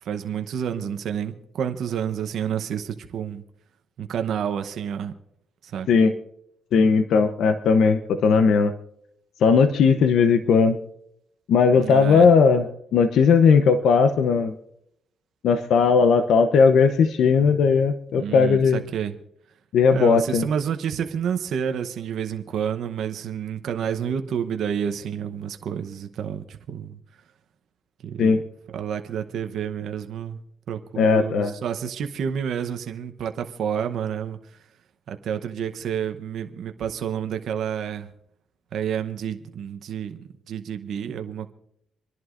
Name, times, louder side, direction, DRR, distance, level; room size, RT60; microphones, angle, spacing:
voice 1, 0.0-3.4 4.0-5.1 5.6-5.9 11.8-12.3 18.1-19.2 19.9-27.0 28.0-28.4 28.7-30.4 30.7-34.6 35.1-38.1 38.7-41.5, right 8 dB, 70° right, 6 dB, 0.9 m, -29 dB
voice 2, 6.7-8.7 9.4-10.8 11.5-14.5 15.4-18.8 19.7-20.4 28.2-28.4 31.0-31.5, left 5 dB, 75° left, 8 dB, 0.8 m, -18 dB
27.0 x 11.0 x 2.6 m, 0.71 s
cardioid pair, 90°, 0 cm